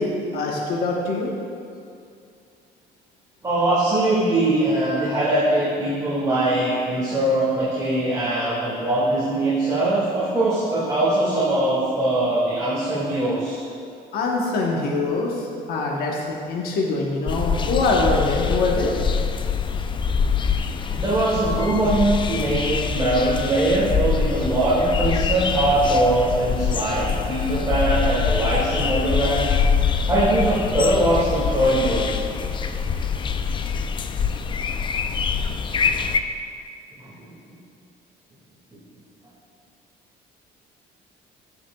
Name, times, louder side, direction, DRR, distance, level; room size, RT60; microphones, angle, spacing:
voice 1, 0.0-1.3 14.1-18.9 32.7-33.6, left 3 dB, 65° left, -2 dB, 1.0 m, -24 dB
voice 2, 3.4-13.6 20.9-29.5 30.1-32.2 37.0-37.5, right 1 dB, 20° right, -9 dB, 1.9 m, -22 dB
sound 1, 17.3-36.2, left 6 dB, 30° left, 0.4 m, -24 dB
14.0 x 5.9 x 2.3 m, 2.5 s
cardioid pair, 110°, 17 cm